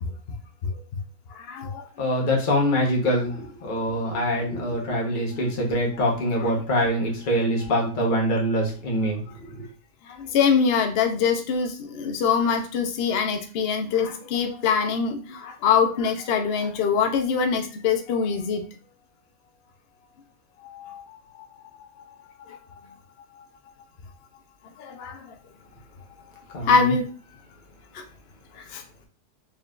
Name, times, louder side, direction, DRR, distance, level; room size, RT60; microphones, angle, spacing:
voice 1, 1.3-1.9 10.1-18.6 20.6-21.5 22.0-22.2 22.5-22.6 24.8-25.3 26.5-27.1 27.9-28.0 28.6-29.0, left 6 dB, 65° left, 5 dB, 0.6 m, -24 dB
voice 2, 2.0-9.6 26.5-26.7, equal, 35° left, -1 dB, 1.0 m, -24 dB
4.1 x 3.6 x 2.4 m, 0.38 s
omnidirectional pair, 1.8 m